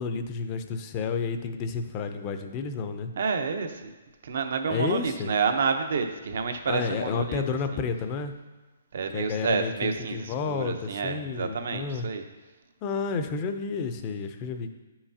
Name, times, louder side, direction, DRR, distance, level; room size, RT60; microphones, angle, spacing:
voice 1, 0.0-3.1 4.7-5.3 6.7-8.3 9.1-12.1 12.8-14.7, left 5 dB, 25° left, 8 dB, 0.5 m, -31 dB
voice 2, 3.2-3.9 4.2-7.4 7.7-7.8 8.9-12.2, right 5 dB, 60° right, 7 dB, 0.8 m, -29 dB
9.6 x 5.8 x 2.8 m, 1.2 s
hypercardioid pair, 160°, 0 cm